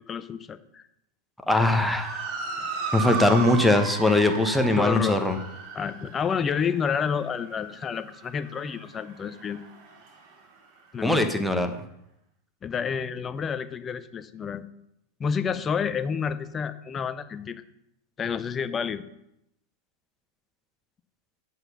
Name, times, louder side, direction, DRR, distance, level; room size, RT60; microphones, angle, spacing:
voice 1, 0.1-0.8 4.8-5.2 5.7-9.6 10.9-11.2 12.6-14.6 15.2-17.6 18.2-19.0, left 6 dB, 20° left, 13 dB, 0.7 m, -29 dB
voice 2, 1.5-2.3 2.9-5.4 11.0-11.7, left 2 dB, ahead, 5 dB, 1.2 m, -21 dB
Motor vehicle (road) / Siren, 1.8-10.3, right 5 dB, 45° right, 2.5 m, -36 dB
9.2 x 8.0 x 5.7 m, 0.79 s
figure-of-eight pair, 90°, 0 cm